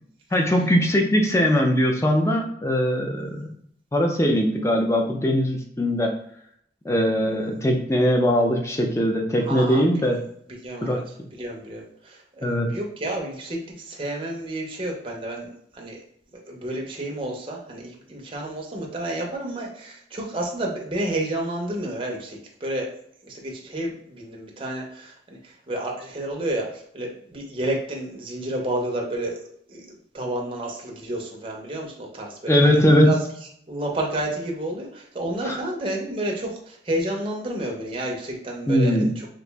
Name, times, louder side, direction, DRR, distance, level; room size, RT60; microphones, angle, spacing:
voice 1, 0.3-3.5 3.9-6.2 6.8-10.2 10.8-11.0 12.4-12.7 32.5-33.1 35.4-35.6 38.7-39.1, equal, 15° left, 2 dB, 0.4 m, -20 dB
voice 2, 9.5-9.8 10.6-11.0 11.4-15.5 15.7-16.0 16.5-22.9 23.3-25.1 25.4-29.4 29.7-29.9 30.1-32.8 33.1-33.2 33.7-39.3, right 1 dB, 30° right, -1 dB, 0.6 m, -30 dB
3.0 x 2.5 x 3.4 m, 0.68 s
head